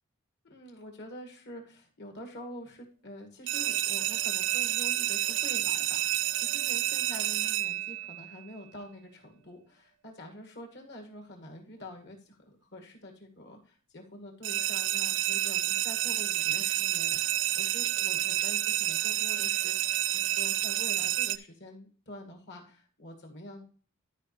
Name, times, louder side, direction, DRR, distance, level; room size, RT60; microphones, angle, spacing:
voice 1, 0.5-23.7, equal, 55° left, 2 dB, 2.1 m, -46 dB
sound 1, 3.5-8.3 14.4-21.4, right 13 dB, 60° right, 0.4 m, -29 dB
12.5 x 5.3 x 3.3 m, 0.40 s
head